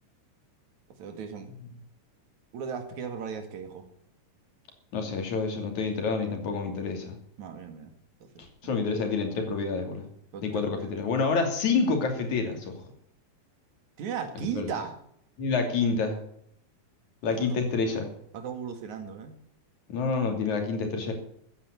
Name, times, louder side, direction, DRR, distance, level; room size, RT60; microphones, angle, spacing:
voice 1, 1.0-1.5 2.5-3.9 7.4-7.9 8.2-8.3 10.3-10.9 14.0-15.0 17.3-17.5 18.3-19.4, right 7 dB, 60° right, 7 dB, 3.2 m, -36 dB
voice 2, 4.9-7.2 8.6-10.1 10.4-12.7 14.6-14.7 15.4-16.2 17.2-18.1 19.9-21.1, left 4 dB, 55° left, 4 dB, 4.1 m, -28 dB
15.0 x 9.8 x 8.3 m, 0.69 s
omnidirectional pair, 4.0 m